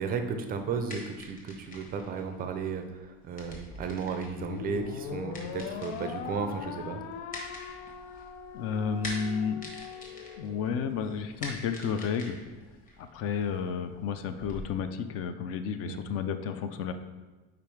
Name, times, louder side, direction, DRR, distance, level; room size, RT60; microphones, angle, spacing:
voice 1, 0.0-7.0 15.9-16.0, right 5 dB, 25° right, 7 dB, 0.4 m, -34 dB
sound 1, 0.6-14.6, left 1 dB, 25° left, 1.1 m, -46 dB
sound 2, 4.4-10.9, left 8 dB, 90° left, 0.6 m, -40 dB
voice 2, 8.5-9.6 10.4-12.4 13.0-16.9, left 6 dB, 40° left, 9 dB, 0.4 m, -32 dB
5.2 x 4.7 x 4.5 m, 1.2 s
cardioid pair, 165°, 35 cm